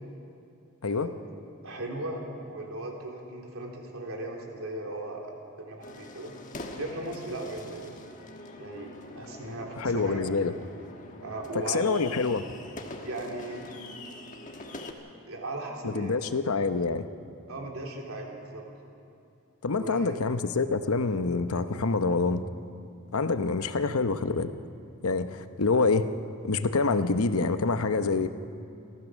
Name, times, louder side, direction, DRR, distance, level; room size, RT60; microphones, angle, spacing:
voice 1, 1.6-5.3 5.6-6.3 6.8-8.0 8.6-10.3 11.2-11.8 13.0-13.6 15.3-16.2 17.5-18.7 19.7-20.2 23.8-24.0, right 2 dB, 80° right, 0 dB, 3.4 m, -37 dB
sound 1, 5.8-14.9, left 2 dB, 35° left, 1.4 m, -44 dB
voice 2, 9.8-10.5 11.5-12.4 15.8-17.1 19.6-22.4 23.1-24.5 25.0-26.1 26.4-28.3, left 4 dB, 85° left, 10 dB, 0.8 m, -26 dB
29.5 x 14.0 x 6.4 m, 2.6 s
head